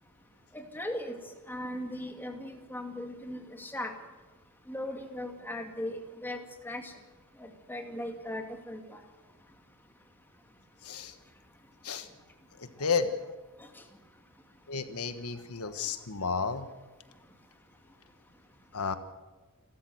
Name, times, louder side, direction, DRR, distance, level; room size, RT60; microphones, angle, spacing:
voice 1, 0.5-1.2 1.5-3.9 4.7-6.9 7.4-9.0 13.0-13.1 13.6-13.8, left 1 dB, 10° left, 4 dB, 2.3 m, -38 dB
voice 2, 10.8-11.1 11.8-12.1 12.6-13.1 14.7-16.7 18.7-19.0, left 5 dB, 80° left, 9 dB, 1.4 m, -32 dB
29.0 x 13.0 x 7.9 m, 1.2 s
head